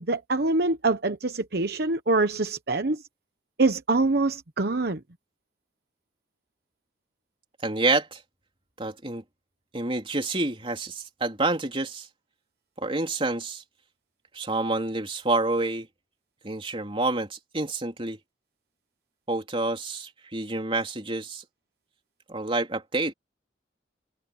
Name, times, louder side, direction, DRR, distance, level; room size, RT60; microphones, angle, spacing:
voice 1, 0.0-3.0 3.6-5.0, right 3 dB, 60° right, 1.0 m, -24 dB
voice 2, 7.6-8.2 8.8-9.2 9.7-12.1 12.8-13.6 14.3-15.9 16.4-18.2 19.3-21.4 22.3-23.1, right 2 dB, 30° right, 3.5 m, -28 dB
head